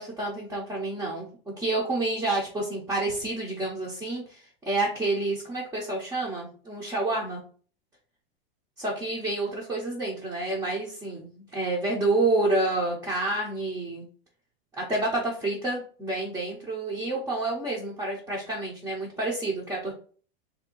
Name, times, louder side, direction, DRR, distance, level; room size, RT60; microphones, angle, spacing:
voice 1, 0.0-7.4 8.8-14.0 14.8-19.9, right 2 dB, 10° right, -6 dB, 0.7 m, -29 dB
3.2 x 2.7 x 4.4 m, 0.42 s
supercardioid pair, 160°, 30 cm